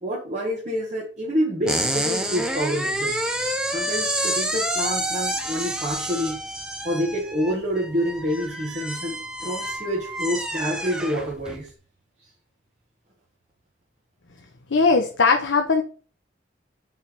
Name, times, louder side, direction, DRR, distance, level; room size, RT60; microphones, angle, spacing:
voice 1, 0.0-3.2 3.7-6.4 6.8-11.7, equal, 40° right, -4 dB, 1.3 m, -27 dB
sound 1, 1.7-11.6, right 1 dB, 5° right, 0.6 m, -28 dB
voice 2, 14.7-15.8, left 4 dB, 85° left, 4 dB, 0.8 m, -19 dB
5.5 x 3.3 x 5.6 m, 0.39 s
head